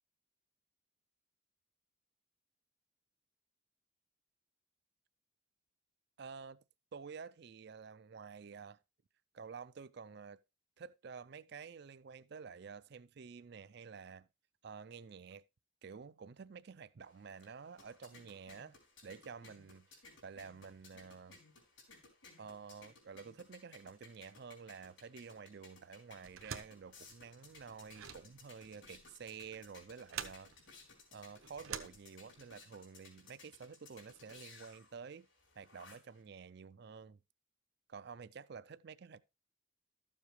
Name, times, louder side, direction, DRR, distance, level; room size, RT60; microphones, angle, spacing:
voice 1, 6.2-6.6 6.9-8.8 9.3-10.4 10.8-14.3 14.6-15.4 15.8-18.8 19.0-19.9 20.2-21.4 22.4-30.5 31.1-35.3 35.6-37.2 37.9-39.2, right 6 dB, 55° right, 0.4 m, -50 dB
sound 1, 17.0-36.2, left 3 dB, 70° left, 4.3 m, -60 dB
sound 2, 26.2-32.6, right 8 dB, 80° right, 1.0 m, -48 dB
13.0 x 7.3 x 3.2 m
head